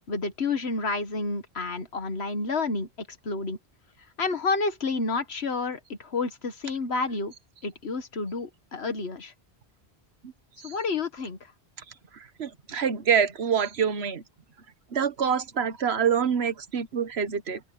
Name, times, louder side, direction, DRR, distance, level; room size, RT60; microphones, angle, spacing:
voice 1, 0.1-2.9 3.3-3.6 4.2-7.3 7.6-9.3 10.6-11.4, left 3 dB, 85° left, 1.8 m, -29 dB
voice 2, 12.4-14.2 14.9-17.6, right 7 dB, 80° right, 1.4 m, -26 dB
open air
omnidirectional pair, 1.1 m